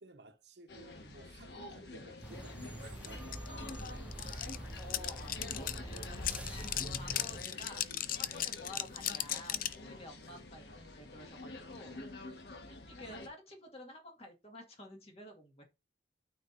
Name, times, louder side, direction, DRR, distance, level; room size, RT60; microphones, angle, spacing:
voice 1, 0.0-4.1, right 2 dB, 75° right, 1.1 m, -56 dB
sound 1, 0.7-13.3, left 2 dB, 70° left, 1.5 m, -48 dB
sound 2, 2.2-7.4, right 1 dB, 5° right, 0.4 m, -45 dB
sound 3, 3.0-3.1 3.3-9.8, left 12 dB, 55° left, 0.5 m, -37 dB
voice 2, 4.6-6.4 6.9-7.9 8.1-12.0 12.7-15.6, left 1 dB, 35° left, 1.9 m, -51 dB
12.5 x 4.2 x 2.7 m
head